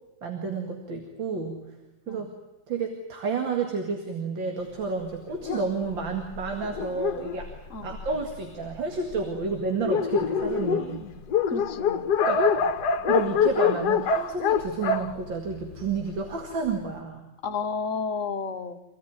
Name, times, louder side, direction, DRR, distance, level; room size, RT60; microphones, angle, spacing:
voice 1, 0.2-1.6 2.1-2.3 2.7-7.5 7.8-11.1 12.3-12.5 13.1-17.2, right 4 dB, 80° right, 3 dB, 2.9 m, -30 dB
Dog, 5.4-8.4 9.1-9.2 9.5-9.6 9.8-16.2, left 6 dB, 65° left, 1.5 m, -26 dB
voice 2, 11.5-12.0 17.4-18.8, left 5 dB, 45° left, 6 dB, 1.4 m, -31 dB
25.5 x 17.0 x 9.7 m, 1.1 s
omnidirectional pair, 2.0 m